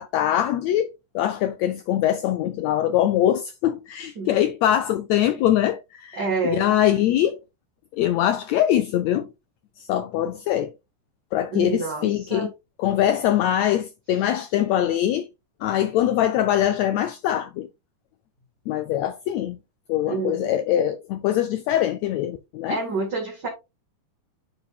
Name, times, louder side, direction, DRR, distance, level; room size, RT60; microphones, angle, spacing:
voice 1, 0.0-7.4 7.9-9.3 9.8-10.7 11.3-12.5 12.8-15.3 15.6-17.7 18.7-19.6 19.9-22.8, left 11 dB, 90° left, 1.5 m, -23 dB
voice 2, 6.1-6.7 11.5-12.5 20.1-20.5 22.7-23.5, right 4 dB, 40° right, 1.9 m, -28 dB
10.5 x 4.7 x 2.3 m
omnidirectional pair, 3.7 m